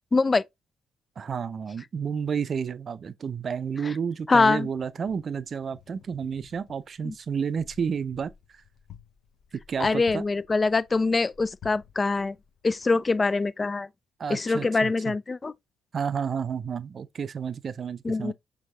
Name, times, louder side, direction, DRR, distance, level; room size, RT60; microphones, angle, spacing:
voice 1, 0.1-0.4 3.8-3.9 4.3-4.7 7.0-7.1 9.8-12.4 12.6-13.9 14.3-15.5 18.0-18.3, left 3 dB, 30° left, 0.3 m, -24 dB
voice 2, 1.2-8.3 9.7-10.2 14.2-15.1 15.9-18.3, right 6 dB, 45° right, 0.5 m, -31 dB
Wind, 4.6-13.5, left 9 dB, 55° left, 0.8 m, -53 dB
6.2 x 2.9 x 2.6 m
figure-of-eight pair, 45°, 0 cm